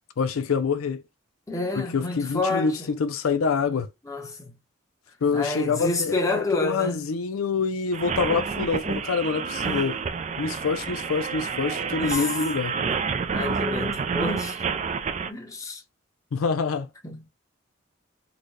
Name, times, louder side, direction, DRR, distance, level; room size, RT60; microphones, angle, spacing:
voice 1, 0.2-1.0 1.8-3.9 5.2-10.0 10.4-12.8 16.3-16.9, left 5 dB, 90° left, 0.5 m, -26 dB
voice 2, 1.5-2.9 4.0-4.5 5.3-7.0 9.6-9.8 12.0-12.3 12.9-13.0 13.3-14.6 15.3-15.8 17.0-17.2, left 2 dB, 15° left, 0.9 m, -29 dB
sound 1, 7.9-15.3, right 5 dB, 35° right, 0.3 m, -29 dB
3.9 x 2.2 x 3.2 m
head